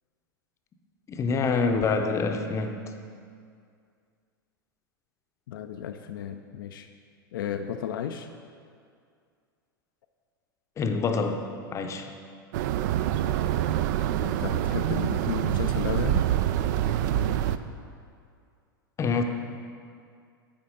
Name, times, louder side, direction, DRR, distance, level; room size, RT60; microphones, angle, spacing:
voice 1, 1.1-2.8 10.8-11.5 11.7-12.1 19.0-19.2, left 4 dB, 25° left, 6 dB, 0.6 m, -26 dB
voice 2, 5.5-6.9 7.3-8.3 14.2-16.3, left 9 dB, 65° left, 6 dB, 0.4 m, -33 dB
sound 1, 12.5-17.6, right 11 dB, 55° right, 0.3 m, -26 dB
8.7 x 4.3 x 5.2 m, 2.2 s
hypercardioid pair, 90°, 12 cm